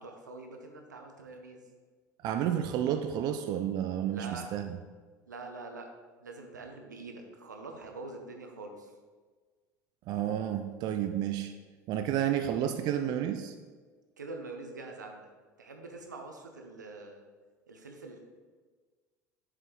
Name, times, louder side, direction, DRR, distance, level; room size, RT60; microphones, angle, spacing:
voice 1, 0.0-1.6 4.0-4.5 5.3-5.9 6.2-8.9 14.2-15.3 15.6-17.2 17.7-18.2, right 3 dB, 85° right, 4 dB, 0.7 m, -44 dB
voice 2, 2.2-4.8 10.1-11.5 11.9-13.5, right 10 dB, 45° right, 7 dB, 0.4 m, -31 dB
7.4 x 4.9 x 3.0 m, 1.5 s
figure-of-eight pair, 70°, 10 cm